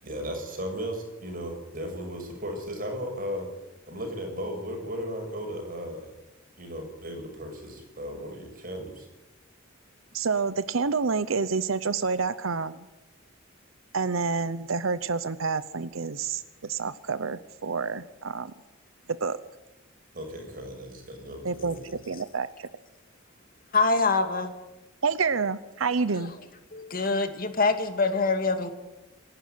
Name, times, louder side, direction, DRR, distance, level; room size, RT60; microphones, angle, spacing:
voice 1, 0.0-3.5 3.9-6.1 6.6-9.1 20.1-22.0, equal, 45° right, 3 dB, 6.7 m, -36 dB
voice 2, 10.1-12.9 13.9-18.5 19.1-19.4 21.4-21.8 22.1-22.7 25.0-26.4, right 4 dB, 80° right, 13 dB, 0.8 m, -28 dB
voice 3, 23.7-24.5 26.7-28.7, left 3 dB, 45° left, 7 dB, 2.3 m, -24 dB
27.0 x 12.0 x 9.6 m, 1.0 s
head